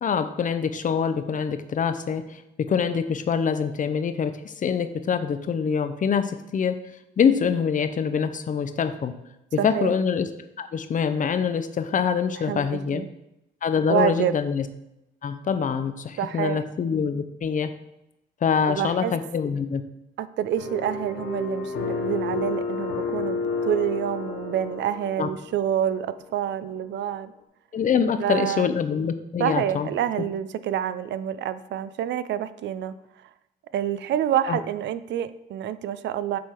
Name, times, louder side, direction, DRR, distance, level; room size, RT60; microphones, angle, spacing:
voice 1, 0.0-6.8 7.2-9.1 9.5-10.3 10.6-13.0 13.6-14.6 15.2-17.7 18.4-19.8 25.2-25.3 27.7-29.9 34.5-34.6, left 6 dB, 40° left, 10 dB, 0.6 m, -25 dB
voice 2, 9.6-9.9 12.5-13.1 13.9-14.3 16.2-16.6 18.7-19.1 20.2-27.3 28.2-28.7 29.4-32.9 33.7-36.4, right 10 dB, 65° right, 14 dB, 0.4 m, -27 dB
sound 1, 20.6-25.8, left 4 dB, 85° left, 1.0 m, -30 dB
7.6 x 3.5 x 4.4 m, 0.88 s
cardioid pair, 90°, 20 cm